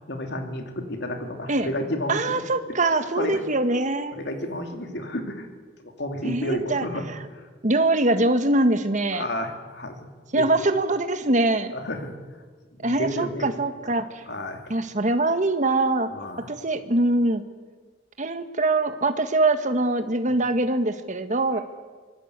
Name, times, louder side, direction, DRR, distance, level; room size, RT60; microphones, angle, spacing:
voice 1, 0.1-2.2 2.7-2.8 3.2-3.4 4.1-5.5 5.8-7.0 9.1-10.1 10.3-10.7 11.7-12.1 12.8-13.5 14.2-14.6 16.1-16.5, left 1 dB, 65° left, 5 dB, 3.2 m, -31 dB
voice 2, 2.1-4.2 6.2-7.3 7.6-9.2 10.3-11.7 12.8-14.2 14.7-16.1 16.5-17.4 18.2-21.6, right 2 dB, 40° right, 9 dB, 1.6 m, -23 dB
25.0 x 21.0 x 8.2 m, 1.5 s
head